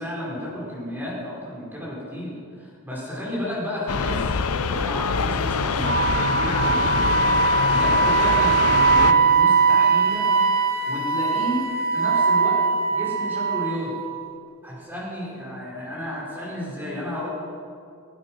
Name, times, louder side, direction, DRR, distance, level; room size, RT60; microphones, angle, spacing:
voice 1, 0.0-4.4 4.6-10.2 10.9-11.6 11.9-12.6 12.9-13.9 14.6-17.3, left 1 dB, 10° right, -6 dB, 5.1 m, -32 dB
sound 1, 3.9-9.1, left 5 dB, 80° left, 0.7 m, -24 dB
Wind instrument woodwind instrument, 5.8-14.1, right 5 dB, 40° right, 1.4 m, -20 dB
22.0 x 9.2 x 6.2 m, 2.4 s
head